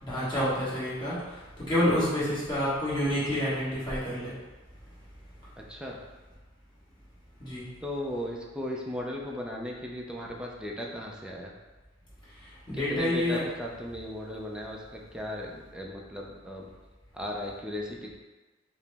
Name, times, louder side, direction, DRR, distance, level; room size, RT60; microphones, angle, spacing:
voice 1, 0.0-4.3 7.4-7.6 12.7-13.4, left 1 dB, 20° left, -10 dB, 1.4 m, -28 dB
voice 2, 5.6-6.0 7.8-11.5 12.7-16.7 17.1-18.1, left 1 dB, 5° right, -1 dB, 0.4 m, -36 dB
4.8 x 2.0 x 3.3 m, 1.2 s
head